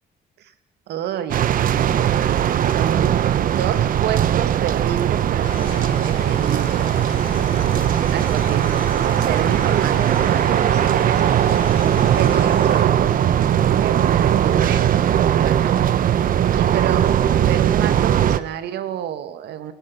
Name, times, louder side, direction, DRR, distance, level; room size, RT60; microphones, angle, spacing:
voice 1, 0.9-1.5 2.7-6.9 7.3-7.5 8.1-8.7 9.2-11.5 12.1-13.2 13.7-15.8 16.6-19.7, right 10 dB, 85° right, 10 dB, 2.3 m, -29 dB
sound 1, 1.3-18.4, right 10 dB, 55° right, 1.2 m, -19 dB
sound 2, 5.4-12.8, left 4 dB, 35° left, 4.6 m, -37 dB
30.0 x 22.0 x 5.9 m, 0.74 s
cardioid pair, 145°, 17 cm